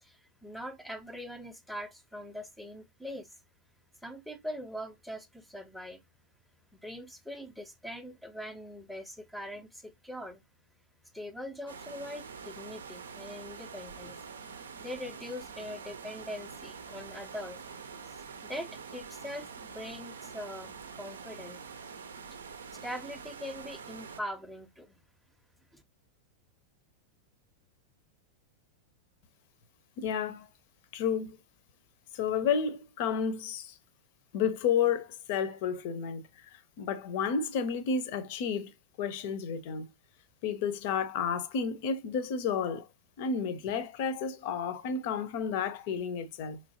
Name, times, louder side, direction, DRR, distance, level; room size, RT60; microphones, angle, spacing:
voice 1, 0.0-3.3 4.0-6.0 6.7-10.4 11.1-14.2 14.8-17.6 18.1-21.6 22.7-25.0 25.7-25.8, equal, ahead, 0.6 m, -42 dB
sound 1, 11.7-24.2, right 6 dB, 70° right, 0.5 m, -45 dB
voice 2, 30.0-30.5 30.9-31.4 32.1-33.7 34.3-36.2 36.8-38.7 39.0-39.9 40.4-42.9 43.2-46.6, left 6 dB, 50° left, 0.7 m, -31 dB
4.4 x 3.2 x 2.7 m
figure-of-eight pair, 90°, 0 cm